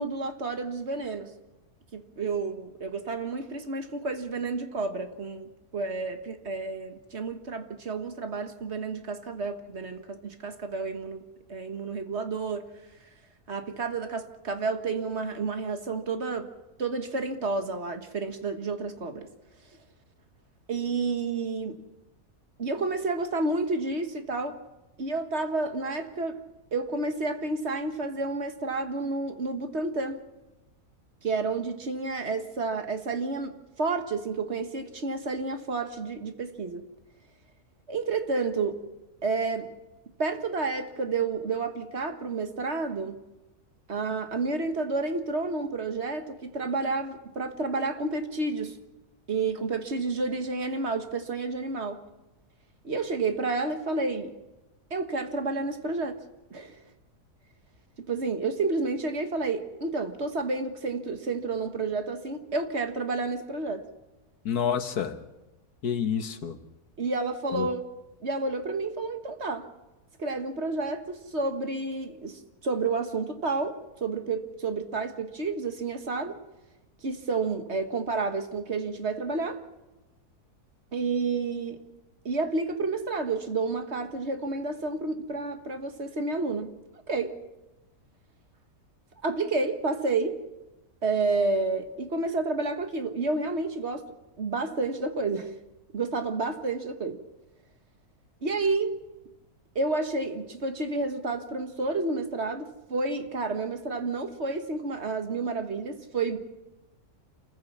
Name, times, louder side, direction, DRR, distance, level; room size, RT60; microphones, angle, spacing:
voice 1, 0.0-1.3 1.9-11.2 11.5-12.7 13.5-16.5 16.8-19.3 20.7-21.8 22.6-24.6 25.0-26.4 26.7-30.2 31.2-36.8 37.9-38.8 39.2-39.7 40.2-43.2 43.9-48.8 49.3-52.0 52.8-54.3 54.9-56.2 56.5-56.8 58.0-63.8 67.0-67.8 68.2-69.7 70.2-76.4 77.0-79.6 80.9-81.8 82.2-86.8 87.1-87.3 89.2-90.4 91.0-94.1 94.4-95.5 95.9-97.2 98.4-98.9 99.7-106.4, right 3 dB, 45° right, 1.7 m, -30 dB
voice 2, 64.5-65.2 65.8-66.6 67.5-67.7, left 8 dB, 90° left, 1.8 m, -28 dB
28.0 x 15.0 x 7.3 m
omnidirectional pair, 1.6 m